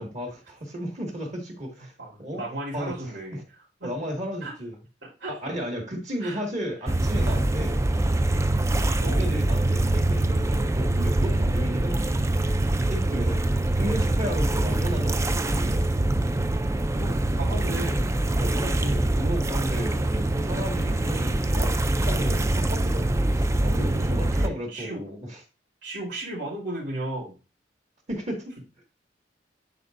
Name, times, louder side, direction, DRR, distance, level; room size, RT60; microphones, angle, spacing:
voice 1, 0.0-2.4 2.7-2.9 3.8-4.7 5.3-7.8 9.0-12.1 12.9-16.0 18.4-25.4 28.1-28.5, equal, 40° right, 2.0 m, -34 dB
voice 2, 2.0-3.4 3.8-3.9 4.4-4.5 5.2-5.3 6.2-6.4 9.0-9.3 17.0-18.1 23.9-25.0 25.8-27.4, right 1 dB, 70° right, 3.7 m, -35 dB
sound 1, 6.9-24.5, right 1 dB, 15° right, 0.3 m, -24 dB
10.5 x 4.3 x 2.6 m
head